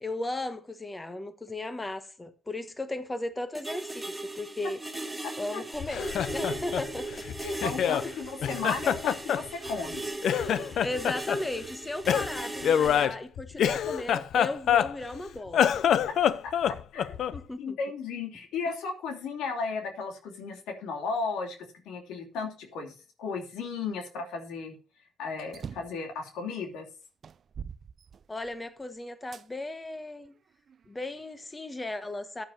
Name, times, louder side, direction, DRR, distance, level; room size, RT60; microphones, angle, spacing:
voice 1, 0.0-4.8 5.4-6.1 6.3-7.2 10.8-15.7 17.3-17.8 28.3-30.3 30.9-32.4, left 2 dB, 20° left, 1.3 m, -36 dB
sound 1, 3.5-13.1, right 2 dB, 5° right, 3.4 m, -38 dB
Laughter, 5.8-8.1 8.4-9.9 10.2-11.4 12.1-15.2 15.5-17.4, left 9 dB, 70° left, 0.6 m, -26 dB
voice 2, 7.6-10.0 16.1-17.1 17.6-21.6 21.8-24.8 25.2-26.9, left 4 dB, 90° left, 2.9 m, -35 dB
sound 2, 25.5-26.0 26.7-26.8 27.2-28.6 29.3-29.5 30.2-31.2, right 7 dB, 50° right, 0.5 m, -43 dB
14.0 x 9.3 x 2.8 m
cardioid pair, 90°, 0 cm